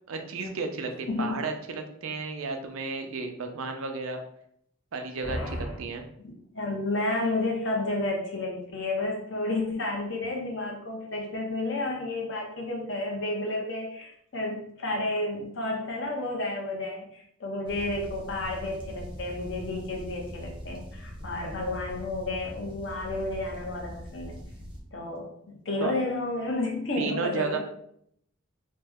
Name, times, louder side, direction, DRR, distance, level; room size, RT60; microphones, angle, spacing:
voice 1, 0.1-4.2 4.9-6.0 25.8-25.9 27.0-27.6, right 4 dB, 75° right, 4 dB, 0.5 m, -33 dB
voice 2, 1.1-1.4 5.2-5.8 6.2-24.4 24.9-27.6, left 2 dB, 60° left, 0 dB, 0.7 m, -31 dB
sound 1, 17.6-24.8, equal, 25° right, 0.6 m, -42 dB
3.1 x 2.1 x 3.5 m, 0.71 s
head